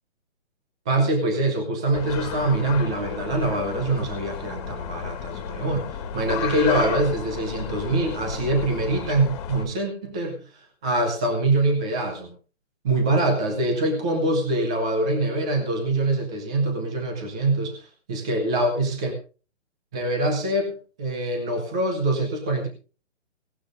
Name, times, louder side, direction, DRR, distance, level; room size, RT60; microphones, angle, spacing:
voice 1, 0.9-12.3 12.8-19.1 19.9-22.7, right 2 dB, 5° right, 3 dB, 0.5 m, -24 dB
sound 1, 1.9-9.7, left 8 dB, 25° left, 2.0 m, -32 dB
17.5 x 12.0 x 3.7 m, 0.36 s
hypercardioid pair, 165°, 36 cm